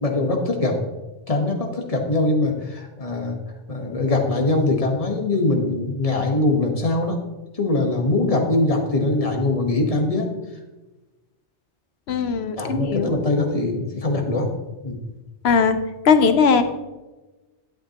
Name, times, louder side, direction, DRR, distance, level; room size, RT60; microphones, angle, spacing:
voice 1, 0.0-0.8 1.3-3.4 3.7-7.2 7.5-10.3 12.6-14.5 14.8-15.0, left 2 dB, 30° left, 2 dB, 1.3 m, -22 dB
voice 2, 12.1-13.1 15.4-15.8 16.0-16.6, left 5 dB, 65° left, 10 dB, 0.9 m, -18 dB
11.5 x 8.3 x 2.9 m, 1.1 s
omnidirectional pair, 1.2 m